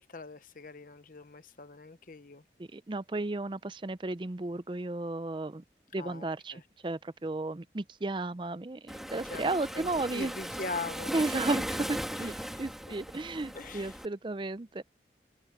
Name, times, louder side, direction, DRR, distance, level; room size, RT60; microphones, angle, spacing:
voice 1, 0.0-2.4 6.0-6.3 6.5-6.6 9.3-11.1 12.1-12.6 13.5-14.0, left 3 dB, 50° left, 0.9 m, -42 dB
voice 2, 2.6-5.6 5.9-10.3 11.1-12.3 12.6-14.8, right 2 dB, 25° right, 0.5 m, -34 dB
Waves surf, 8.9-14.1, equal, ahead, 1.6 m, -38 dB
open air
head